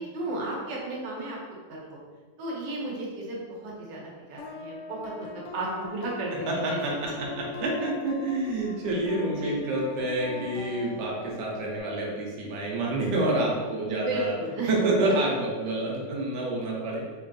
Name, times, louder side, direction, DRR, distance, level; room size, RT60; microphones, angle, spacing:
voice 1, 0.0-1.4 1.7-2.0 2.4-4.0 4.3-6.8 9.4-9.6 13.9-14.7, right 2 dB, 90° right, -4 dB, 1.4 m, -33 dB
sound 1, 4.4-11.8, left 5 dB, 90° left, 0.6 m, -41 dB
voice 2, 6.3-14.3 14.7-17.2, right 2 dB, 70° right, -3 dB, 1.2 m, -28 dB
3.9 x 2.6 x 2.6 m, 1.4 s
omnidirectional pair, 1.9 m